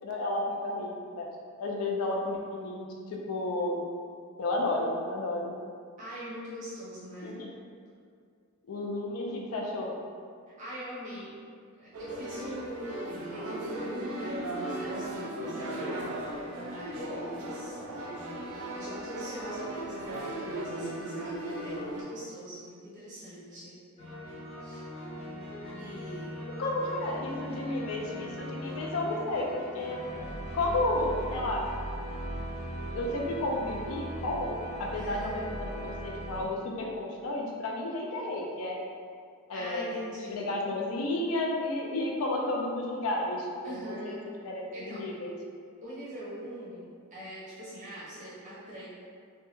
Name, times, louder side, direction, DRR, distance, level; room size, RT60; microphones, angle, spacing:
voice 1, 0.0-1.3 1.6-3.8 4.4-5.5 7.2-7.5 8.7-10.0 26.6-29.5 29.7-30.3 30.5-31.7 32.9-38.8 39.5-39.9 40.3-44.2 44.4-45.4, left 2 dB, 70° left, -1 dB, 0.4 m, -32 dB
voice 2, 6.0-7.4 10.6-11.4 11.8-15.6 16.5-17.8 18.1-23.8 24.6-24.8 25.8-26.6 34.9-35.5 39.5-40.3 43.6-44.2 44.7-45.1 45.8-48.8, equal, 35° right, -10 dB, 0.6 m, -42 dB
sound 1, 11.9-22.0, right 1 dB, 80° right, 0.4 m, -37 dB
sound 2, 24.0-36.4, equal, 30° left, 0.6 m, -39 dB
2.2 x 2.0 x 2.9 m, 2.2 s
head